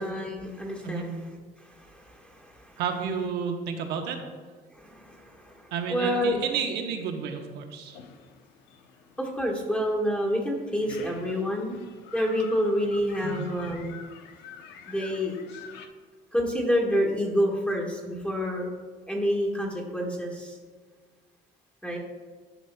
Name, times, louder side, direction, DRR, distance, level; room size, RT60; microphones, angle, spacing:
voice 1, 0.0-2.8 4.7-6.4 9.2-11.8 12.1-13.9 14.9-15.3 16.3-18.7 19.1-20.6 21.8-22.0, equal, 5° left, -2 dB, 1.3 m, -28 dB
voice 2, 2.8-4.2 5.7-8.0 13.2-13.5, right 6 dB, 85° right, 4 dB, 0.9 m, -31 dB
sound 1, 7.8-15.9, left 6 dB, 85° left, 0.6 m, -47 dB
11.0 x 5.4 x 2.2 m, 1.5 s
cardioid pair, 110°, 17 cm